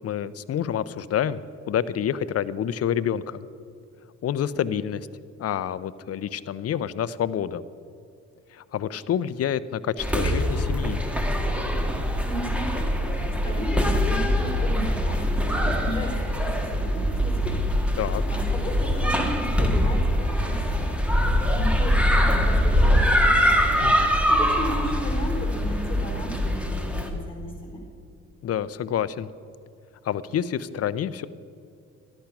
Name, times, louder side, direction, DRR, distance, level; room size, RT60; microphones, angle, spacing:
voice 1, 0.0-3.4 4.2-5.1 5.4-7.6 8.5-11.0 18.0-18.2 23.8-24.1 28.4-29.3 30.0-31.3, left 9 dB, 50° left, 16 dB, 0.6 m, -28 dB
sound 1, 10.0-27.1, equal, 5° right, 1.7 m, -23 dB
voice 2, 12.2-12.9 13.3-17.6 18.3-21.0 21.5-23.5 24.3-27.8, equal, 15° left, 1 dB, 4.1 m, -35 dB
13.5 x 11.5 x 5.9 m, 2.5 s
cardioid pair, 90°, 30 cm